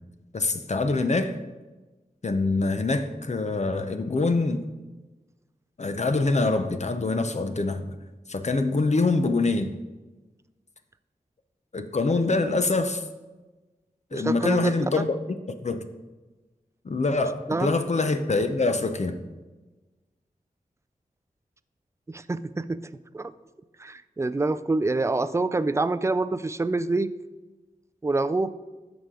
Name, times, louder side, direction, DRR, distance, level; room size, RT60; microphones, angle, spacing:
voice 1, 0.3-1.4 2.2-4.7 5.8-7.9 8.3-9.7 11.7-13.0 14.1-15.2 15.5-15.8 16.8-19.1, left 3 dB, 50° left, 8 dB, 0.7 m, -25 dB
voice 2, 14.1-14.7 17.5-17.7 22.1-22.8 23.1-23.3 23.8-27.1 28.0-28.5, right 3 dB, 20° right, 13 dB, 0.4 m, -26 dB
13.0 x 4.9 x 3.8 m, 1.2 s
wide cardioid pair, 75°, 15 cm